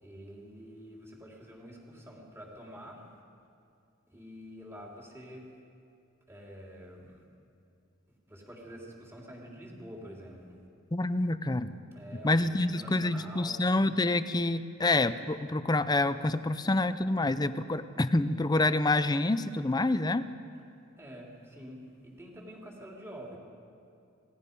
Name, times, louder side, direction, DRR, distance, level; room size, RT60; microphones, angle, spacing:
voice 1, 0.0-3.0 4.1-5.5 6.3-7.2 8.1-10.6 11.9-13.6 21.0-23.4, equal, 15° right, -2 dB, 3.6 m, -47 dB
voice 2, 10.9-11.7 12.2-20.3, left 2 dB, 20° left, 12 dB, 0.6 m, -27 dB
26.5 x 18.5 x 5.4 m, 2.6 s
head